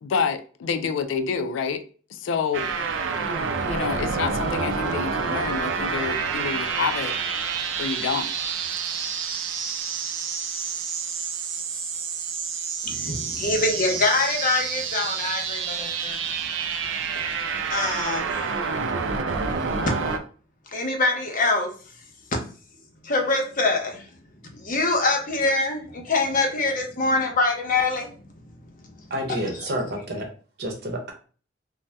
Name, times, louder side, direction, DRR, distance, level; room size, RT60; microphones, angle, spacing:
voice 1, 0.0-1.8 2.1-2.7 3.7-7.2 7.8-8.3, left 6 dB, 85° left, 0.3 m, -28 dB
sound 1, 2.5-20.2, right 5 dB, 85° right, 0.4 m, -28 dB
voice 2, 12.8-16.2 17.7-18.6 20.7-21.7 23.0-24.1 24.5-28.1, left 2 dB, 45° left, 0.7 m, -24 dB
voice 3, 29.1-30.3 30.6-31.1, right 1 dB, 60° right, 0.8 m, -29 dB
2.6 x 2.1 x 3.3 m
head